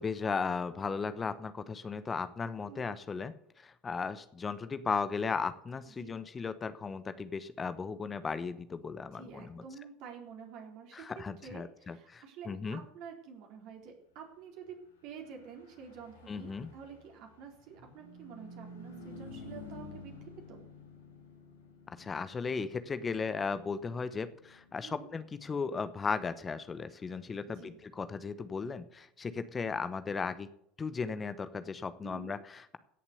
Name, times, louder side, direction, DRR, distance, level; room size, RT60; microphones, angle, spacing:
voice 1, 0.0-9.6 10.9-12.8 16.3-16.7 22.0-30.5 30.8-32.8, left 5 dB, 25° left, 13 dB, 0.9 m, -36 dB
voice 2, 5.9-6.2 9.1-11.0 11.4-14.8 15.0-20.1 20.5-20.6 24.8-25.1 27.5-27.8 32.0-32.4, right 6 dB, 55° right, 2 dB, 3.9 m, -49 dB
Car passing by / Truck, 15.0-28.7, left 2 dB, 85° left, 2.6 m, -53 dB
16.5 x 7.2 x 6.8 m, 0.73 s
figure-of-eight pair, 75°, 0 cm